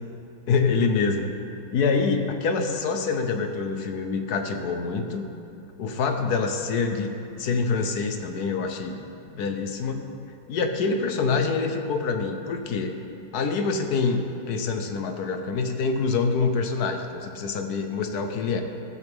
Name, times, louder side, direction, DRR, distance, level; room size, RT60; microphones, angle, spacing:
voice 1, 0.5-1.4 1.7-5.2 5.8-9.0 9.3-10.1 10.5-12.9 13.3-18.6, left 4 dB, 60° left, 6 dB, 1.1 m, -26 dB
14.0 x 12.5 x 3.6 m, 2.8 s
omnidirectional pair, 2.2 m